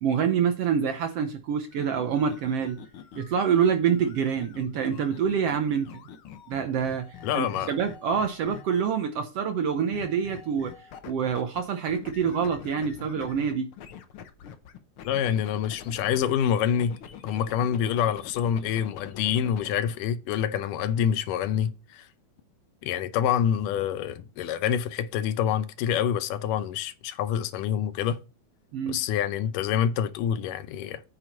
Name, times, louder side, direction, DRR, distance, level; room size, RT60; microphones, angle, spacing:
voice 1, 0.0-2.8 3.2-6.0 6.5-7.1 7.3-10.7 11.1-13.7 28.7-29.0, right 7 dB, 70° right, 1.5 m, -26 dB
sound 1, 1.7-8.9 9.9-11.6 11.9-16.3 16.7-19.8, left 8 dB, 70° left, 1.3 m, -45 dB
voice 2, 7.2-7.7 15.0-17.0 17.2-22.1 22.8-28.2 28.9-31.0, left 9 dB, 85° left, 2.4 m, -26 dB
9.0 x 6.2 x 4.3 m
omnidirectional pair, 3.7 m